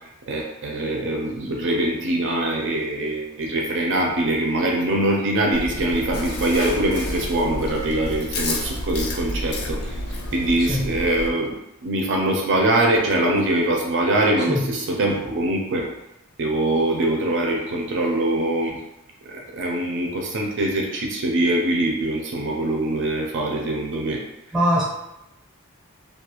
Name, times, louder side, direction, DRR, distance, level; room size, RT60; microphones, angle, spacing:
voice 1, 0.3-10.0 10.3-15.8 16.4-18.8 19.2-24.2, right 1 dB, 55° right, 0 dB, 0.4 m, -23 dB
Chewing mastication, 5.5-11.3, left 1 dB, 75° left, 0.5 m, -30 dB
voice 2, 24.5-24.8, equal, 5° right, -5 dB, 0.6 m, -20 dB
2.3 x 2.3 x 2.9 m, 0.87 s
head